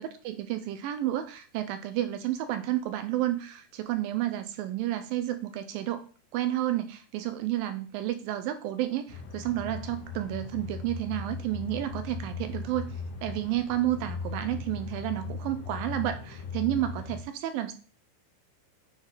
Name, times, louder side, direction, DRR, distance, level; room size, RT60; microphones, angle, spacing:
voice 1, 0.0-6.0 6.3-12.9 13.2-17.7, right 13 dB, 80° right, 9 dB, 2.1 m, -31 dB
sound 1, 9.1-17.2, left 4 dB, 70° left, 2.5 m, -38 dB
9.6 x 3.8 x 4.0 m, 0.39 s
omnidirectional pair, 4.5 m